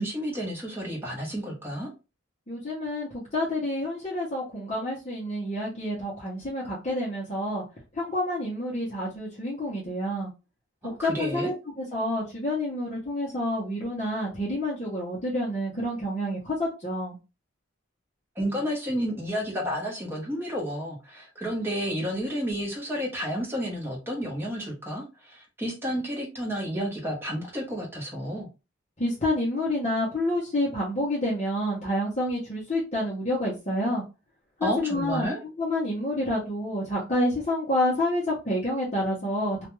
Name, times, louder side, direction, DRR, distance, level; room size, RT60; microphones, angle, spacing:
voice 1, 0.0-1.9 10.8-11.5 18.4-28.5 34.6-35.4, equal, 10° right, 0.9 m, -31 dB
voice 2, 2.5-7.6 7.9-10.3 10.8-17.2 29.0-34.0 34.6-35.3 35.6-39.7, left 1 dB, 30° left, 0.7 m, -28 dB
2.3 x 2.2 x 3.0 m
head